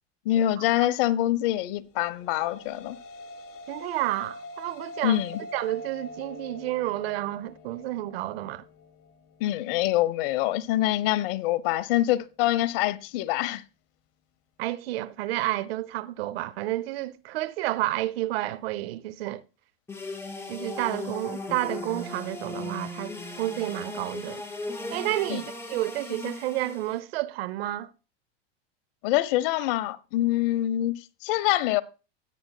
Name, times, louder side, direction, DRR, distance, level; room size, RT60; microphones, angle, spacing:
voice 1, 0.2-3.0 5.0-5.4 9.4-13.6 25.3-25.4 29.0-31.8, left 14 dB, 65° left, 0.9 m, -25 dB
sound 1, 2.0-10.5, left 2 dB, 50° left, 1.4 m, -44 dB
voice 2, 3.7-5.2 5.5-8.6 14.6-19.4 20.5-24.4 24.9-27.9, right 16 dB, 80° right, 0.7 m, -30 dB
sound 2, 19.9-27.0, left 2 dB, 10° left, 2.7 m, -37 dB
16.5 x 9.2 x 2.2 m
supercardioid pair, 115°, 29 cm